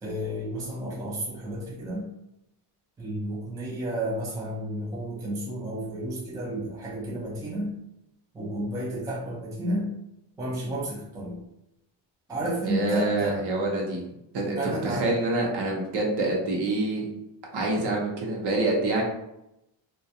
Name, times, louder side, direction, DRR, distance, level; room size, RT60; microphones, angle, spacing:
voice 1, 0.0-2.1 3.0-7.7 8.3-9.9 10.4-11.4 12.3-13.4 14.5-15.1, right 1 dB, 10° right, -6 dB, 0.3 m, -31 dB
voice 2, 12.7-14.0 14.3-17.0 17.5-19.0, right 2 dB, 60° right, -2 dB, 0.8 m, -26 dB
2.3 x 2.2 x 2.7 m, 0.86 s
cardioid pair, 155°, 47 cm